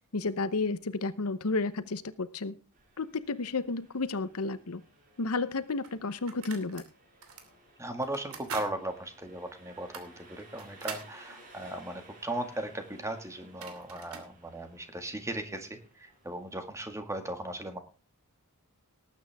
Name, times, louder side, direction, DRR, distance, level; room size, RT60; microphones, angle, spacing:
voice 1, 0.1-2.6 3.0-4.8 5.2-6.8, left 3 dB, 70° left, 14 dB, 0.8 m, -32 dB
Engine, 2.7-16.7, right 2 dB, 40° right, 6.3 m, -58 dB
sound 1, 5.1-5.2 5.8-6.9 7.2-7.5 8.0-8.7 9.1-9.2 9.8-11.1 13.1-13.2 13.4-14.3, right 5 dB, 70° right, 2.7 m, -43 dB
voice 2, 7.8-17.8, right 1 dB, 15° right, 6 dB, 1.9 m, -37 dB
19.0 x 9.0 x 3.5 m, 0.32 s
head